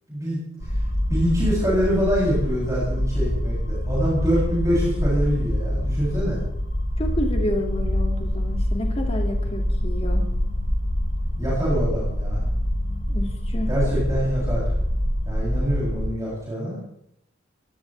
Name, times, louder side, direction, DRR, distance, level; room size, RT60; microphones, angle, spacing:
voice 1, 0.1-0.4 1.1-6.4 11.4-12.4 13.7-14.7 15.2-16.8, equal, 15° right, -7 dB, 7.8 m, -25 dB
sound 1, 0.6-16.1, equal, 60° left, 5.5 m, -25 dB
voice 2, 7.0-10.2 13.1-13.7, left 1 dB, 30° left, 2 dB, 2.5 m, -29 dB
23.5 x 17.0 x 3.5 m, 0.72 s
head